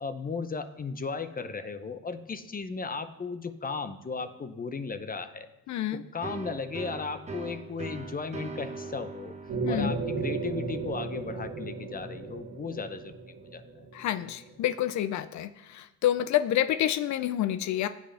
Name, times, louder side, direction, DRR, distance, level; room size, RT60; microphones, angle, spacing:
voice 1, 0.0-5.5 5.9-9.3 9.7-13.6, left 4 dB, 30° left, 10 dB, 0.7 m, -36 dB
voice 2, 5.7-6.0 9.6-9.9 13.9-17.9, left 12 dB, 70° left, 12 dB, 0.5 m, -28 dB
sound 1, 6.2-13.7, right 3 dB, 20° right, 1.2 m, -43 dB
sound 2, 9.5-14.6, right 4 dB, 70° right, 2.2 m, -35 dB
15.5 x 7.9 x 3.4 m, 0.94 s
cardioid pair, 90°, 30 cm